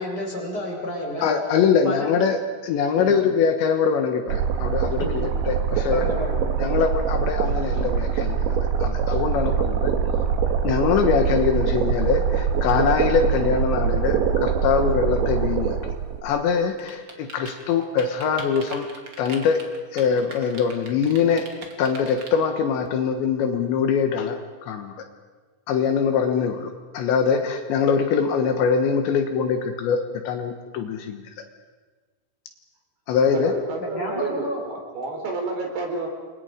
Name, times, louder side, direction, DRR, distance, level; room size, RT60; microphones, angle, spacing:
voice 1, 0.0-1.2 1.8-2.1 3.0-3.1 5.0-5.2 5.9-6.4 33.8-34.6, left 1 dB, 20° left, -2 dB, 6.3 m, -30 dB
voice 2, 1.2-6.0 6.6-10.3 10.6-15.8 16.2-18.9 19.2-19.6 19.9-21.5 21.8-25.0 25.7-30.0 30.3-31.2 33.1-33.5, left 6 dB, 70° left, 6 dB, 3.3 m, -23 dB
sound 1, 4.3-16.2, right 7 dB, 70° right, 3.8 m, -23 dB
sound 2, 16.7-22.3, right 4 dB, 35° right, 2.1 m, -39 dB
voice 3, 33.3-36.1, right 3 dB, 55° right, 2 dB, 5.7 m, -30 dB
29.5 x 24.5 x 5.1 m, 1.4 s
omnidirectional pair, 5.6 m